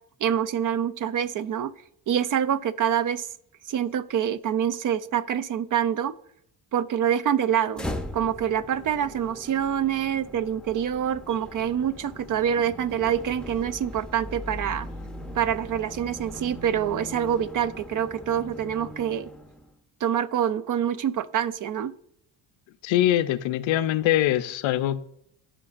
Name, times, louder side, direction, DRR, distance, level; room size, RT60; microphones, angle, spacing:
voice 1, 0.2-1.7 2.1-3.3 3.7-6.1 6.7-7.9 8.1-14.9 15.3-19.3 20.0-21.9, right 9 dB, 45° right, 0.4 m, -26 dB
sound 1, 7.7-19.7, left 1 dB, ahead, 0.6 m, -40 dB
voice 2, 22.8-25.0, left 13 dB, 85° left, 0.6 m, -23 dB
14.5 x 5.1 x 2.5 m
cardioid pair, 110°, 45 cm